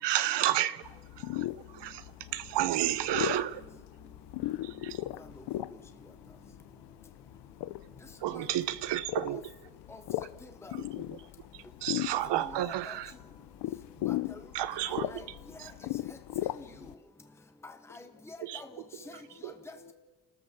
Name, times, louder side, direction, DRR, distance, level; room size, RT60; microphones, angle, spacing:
voice 1, 0.0-3.6 4.6-5.1 8.2-9.4 10.7-11.0 11.5-13.1 14.5-15.1 15.6-15.7 18.4-18.6 19.4-19.5, right 13 dB, 90° right, 1.1 m, -32 dB
sound 1, 0.8-16.9, left 15 dB, 85° left, 0.8 m, -38 dB
voice 2, 10.4-10.7 12.2-13.0 14.1-14.4 14.9-15.2 15.5-15.7 16.1-16.2 16.5-16.9 17.6-18.7 19.1-19.8, left 2 dB, 5° left, 1.0 m, -48 dB
voice 3, 17.9-19.9, left 1 dB, 50° left, 3.2 m, -56 dB
29.5 x 13.0 x 7.3 m
cardioid pair, 145°, 41 cm